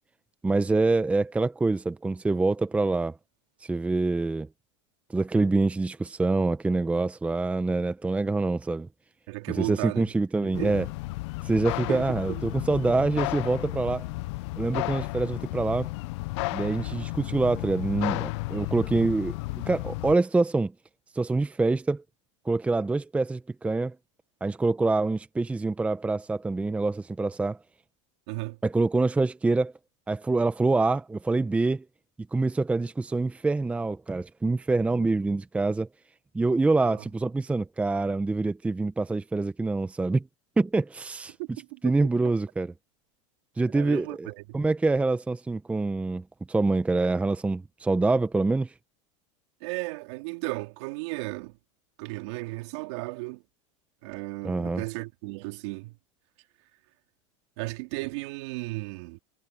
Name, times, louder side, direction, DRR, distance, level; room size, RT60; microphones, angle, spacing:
voice 1, 0.4-3.2 3.6-4.5 5.1-8.9 9.5-10.8 11.4-14.1 14.6-15.9 16.5-19.3 19.7-20.7 21.1-22.0 22.5-23.9 24.4-27.6 28.6-29.7 30.1-31.8 32.3-35.9 36.3-40.2 40.6-41.3 41.8-42.7 43.6-48.7 54.4-54.8, right 3 dB, 10° right, 0.8 m, -25 dB
voice 2, 9.3-10.1 10.4-10.8 11.9-12.4 28.3-28.6 36.8-37.1 41.4-41.8 43.7-44.6 49.6-51.5 52.0-53.4 54.0-56.0 57.6-59.2, right 24 dB, 65° right, 3.5 m, -35 dB
sound 1, 10.5-20.2, left 22 dB, 65° left, 0.5 m, -33 dB
supercardioid pair, 130°, 16 cm